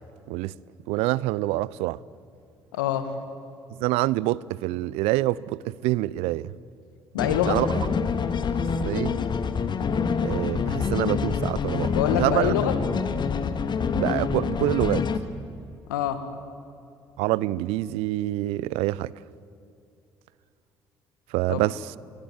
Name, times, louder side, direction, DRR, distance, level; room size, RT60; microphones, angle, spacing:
voice 1, 0.9-2.0 3.8-6.5 7.5-7.7 8.8-9.1 10.2-12.5 13.9-15.1 17.2-19.1 21.3-21.9, right 17 dB, 75° right, 0.5 m, -26 dB
voice 2, 2.7-3.1 7.1-7.6 11.9-12.7 15.9-16.2 21.5-21.6, left 10 dB, 85° left, 1.9 m, -25 dB
sound 1, 7.2-15.2, left 5 dB, 45° left, 1.9 m, -26 dB
24.0 x 21.0 x 9.3 m
hypercardioid pair, 50°, 10 cm